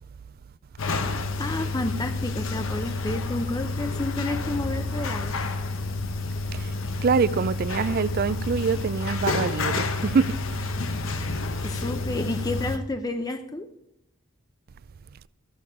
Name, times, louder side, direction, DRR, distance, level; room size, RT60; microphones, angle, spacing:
sound 1, 0.8-12.8, left 3 dB, 75° left, 1.0 m, -29 dB
voice 1, 1.4-5.4 11.6-13.7, left 2 dB, 20° left, 0.5 m, -30 dB
voice 2, 7.0-10.4, right 5 dB, 45° right, 0.4 m, -25 dB
14.0 x 7.0 x 4.9 m
head